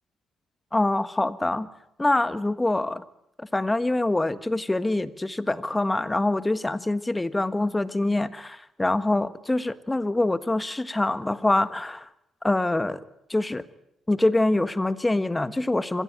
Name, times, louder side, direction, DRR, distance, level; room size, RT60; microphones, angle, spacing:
voice 1, 0.7-1.7 2.0-3.0 3.4-12.1 12.4-13.0 13.3-13.6 14.1-16.0, left 2 dB, 15° left, 14 dB, 1.5 m, -25 dB
26.0 x 20.0 x 9.2 m, 0.75 s
cardioid pair, 90°, 0 cm